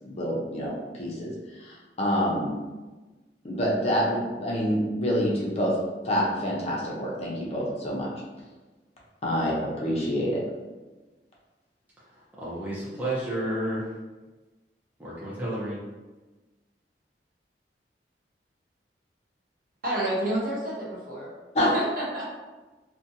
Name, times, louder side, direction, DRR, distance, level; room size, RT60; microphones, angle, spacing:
voice 1, 0.0-2.6 3.4-5.8 6.0-8.1 9.2-10.4 21.5-21.7, equal, 35° left, -4 dB, 0.6 m, -27 dB
voice 2, 12.4-13.9 15.0-15.8, right 1 dB, 10° right, -9 dB, 0.5 m, -31 dB
voice 3, 19.8-21.3 21.5-22.3, right 1 dB, 55° right, -6 dB, 0.9 m, -29 dB
2.5 x 2.2 x 2.7 m, 1.2 s
head